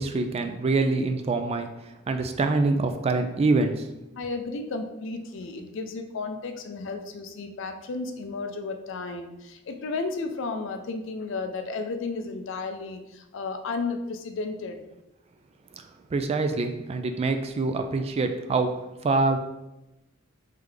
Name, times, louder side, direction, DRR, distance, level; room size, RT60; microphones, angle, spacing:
voice 1, 0.0-1.7 2.1-3.9 16.1-18.7 19.0-19.4, right 3 dB, 30° right, 6 dB, 0.3 m, -25 dB
voice 2, 4.2-14.8, left 3 dB, 65° left, 6 dB, 0.4 m, -33 dB
3.8 x 3.2 x 3.2 m, 0.96 s
head